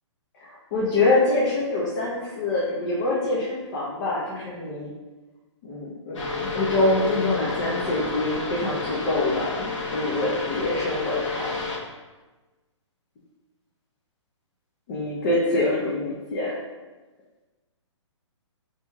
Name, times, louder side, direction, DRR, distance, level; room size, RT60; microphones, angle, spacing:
voice 1, 0.4-4.9 5.6-11.5 14.9-16.6, left 2 dB, 35° left, -6 dB, 0.7 m, -25 dB
sound 1, 6.1-11.8, left 4 dB, 75° left, 1.1 m, -30 dB
6.0 x 2.9 x 2.3 m, 1.2 s
hypercardioid pair, 155°, 16 cm